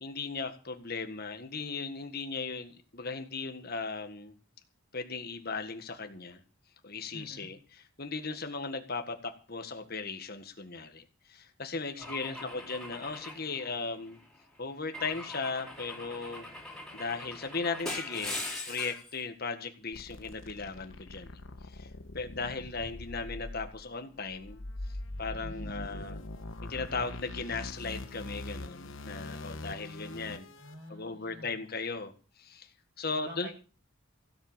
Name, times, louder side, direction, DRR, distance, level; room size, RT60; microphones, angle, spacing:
voice 1, 0.0-4.3 4.9-6.4 6.8-11.0 11.3-14.2 14.6-16.4 16.9-18.4 18.7-21.4 21.7-21.9 22.1-24.6 25.2-26.2 26.7-30.5 30.9-32.7 33.0-33.5, left 4 dB, 45° left, 7 dB, 1.7 m, -37 dB
voice 2, 7.1-7.5 12.0-12.5 30.5-31.6 33.2-33.5, right 1 dB, 45° right, 1 dB, 7.7 m, -47 dB
Car / Engine / Glass, 12.0-14.2 14.9-19.1, left 2 dB, 5° left, 3.8 m, -41 dB
sound 1, 19.9-30.7, left 1 dB, 65° left, 1.2 m, -43 dB
16.5 x 8.0 x 7.5 m, 0.37 s
head